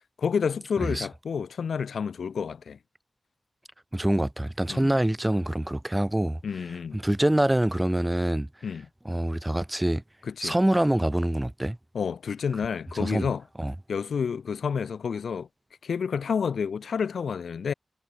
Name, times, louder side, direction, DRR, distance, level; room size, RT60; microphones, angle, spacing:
voice 1, 0.2-2.8 4.7-5.0 6.4-7.0 8.6-8.9 10.3-10.6 11.9-13.4 13.9-15.5 15.8-17.7, left 6 dB, 90° left, 1.2 m, -29 dB
voice 2, 3.9-6.4 6.9-8.5 9.0-10.0 10.4-11.8 13.0-13.3 13.6-13.7, right 1 dB, 10° right, 1.0 m, -25 dB
wide cardioid pair, 90°, 0 cm